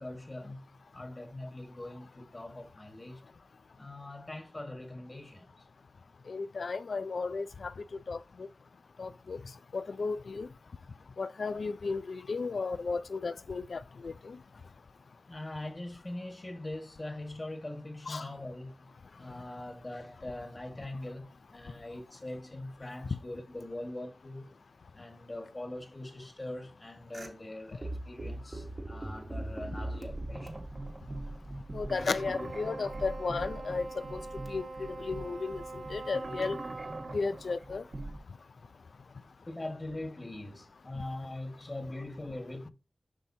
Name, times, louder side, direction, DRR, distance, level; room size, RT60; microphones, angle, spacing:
voice 1, 0.0-3.2 3.8-5.5 15.3-18.9 19.2-24.5 24.9-30.6 39.5-42.7, left 1 dB, 35° left, 1.6 m, -42 dB
voice 2, 6.3-7.7 8.1-8.2 9.0-9.4 9.7-10.5 11.2-14.4 18.1-18.2 31.7-33.9 34.1-34.2 34.5-36.6 37.1-37.8, left 4 dB, 85° left, 0.4 m, -34 dB
sound 1, 27.1-27.3 27.8-38.2, right 1 dB, 50° right, 1.2 m, -41 dB
Wind instrument woodwind instrument, 32.2-37.3, right 3 dB, 85° right, 3.4 m, -43 dB
7.6 x 5.7 x 2.8 m
wide cardioid pair, 55°, 0 cm